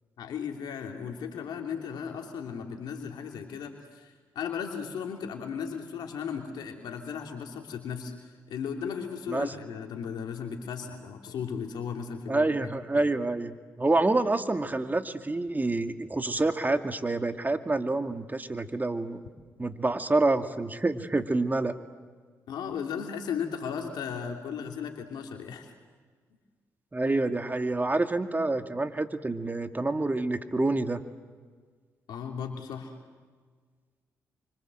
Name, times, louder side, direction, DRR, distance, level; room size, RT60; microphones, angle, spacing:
voice 1, 0.2-12.7 12.9-13.1 22.5-25.7 32.1-32.9, left 7 dB, 75° left, 3 dB, 3.0 m, -36 dB
voice 2, 12.3-19.2 19.6-21.7 26.9-31.0, right 2 dB, 25° right, 7 dB, 2.4 m, -27 dB
29.5 x 25.0 x 7.8 m, 1.5 s
hypercardioid pair, 45°, 7 cm